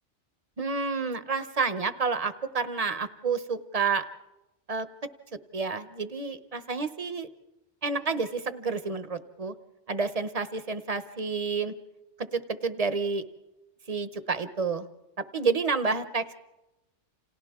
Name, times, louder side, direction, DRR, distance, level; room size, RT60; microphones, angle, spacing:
voice 1, 0.6-4.0 4.7-4.9 5.5-7.3 7.8-9.5 9.9-11.7 12.2-13.2 13.9-14.9 15.2-16.3, right 4 dB, 35° right, 11 dB, 0.9 m, -29 dB
29.5 x 27.5 x 3.6 m, 0.99 s
omnidirectional pair, 1.2 m